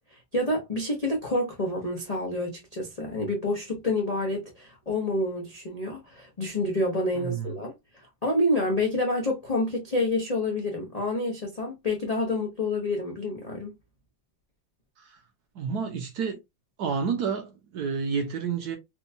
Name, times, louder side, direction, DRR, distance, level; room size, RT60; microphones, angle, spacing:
voice 1, 0.1-13.7, left 1 dB, 85° left, 0.3 m, -28 dB
voice 2, 7.1-7.6 15.0-15.2 15.5-16.4 16.8-18.8, right 6 dB, 65° right, 1.1 m, -30 dB
4.4 x 2.2 x 2.6 m
omnidirectional pair, 2.2 m